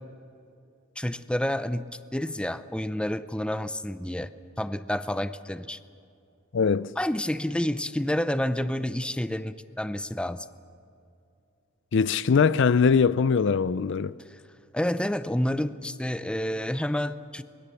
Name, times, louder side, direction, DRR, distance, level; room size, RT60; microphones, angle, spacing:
voice 1, 1.0-4.3 4.6-5.8 7.0-10.5 14.3-14.4 14.7-17.4, left 1 dB, 5° left, 0.6 m, -29 dB
voice 2, 6.5-6.9 11.9-14.2, left 5 dB, 60° left, 0.5 m, -22 dB
24.0 x 21.0 x 7.0 m
head